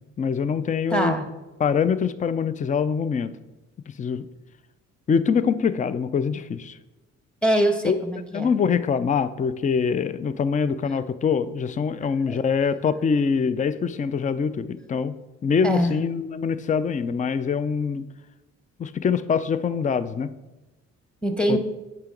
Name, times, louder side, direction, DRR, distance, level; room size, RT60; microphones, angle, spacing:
voice 1, 0.2-1.1 1.6-3.3 4.0-4.3 5.1-6.8 7.8-8.0 8.3-15.1 15.4-18.0 18.8-20.3 21.5-21.6, left 6 dB, 25° left, 15 dB, 0.4 m, -24 dB
voice 2, 0.9-1.3 7.4-8.5 12.3-12.4 15.6-15.9 21.2-21.6, right 1 dB, 5° left, 6 dB, 1.2 m, -23 dB
8.8 x 5.8 x 3.8 m, 1.1 s
cardioid pair, 75°, 30 cm